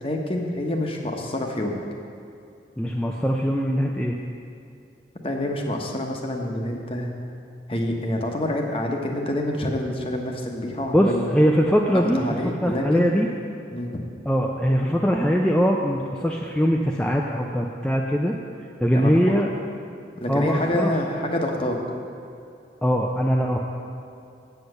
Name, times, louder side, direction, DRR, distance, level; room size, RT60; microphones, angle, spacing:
voice 1, 0.0-1.8 5.2-7.1 7.7-11.3 11.9-13.1 13.7-13.9 18.9-19.1 20.2-21.8, left 1 dB, 30° left, 2 dB, 1.0 m, -27 dB
voice 2, 2.8-4.2 10.9-12.2 12.6-13.3 14.3-18.4 18.8-19.5 20.3-20.9 22.8-23.6, equal, 5° left, -1 dB, 0.4 m, -21 dB
8.4 x 8.0 x 6.6 m, 2.6 s
head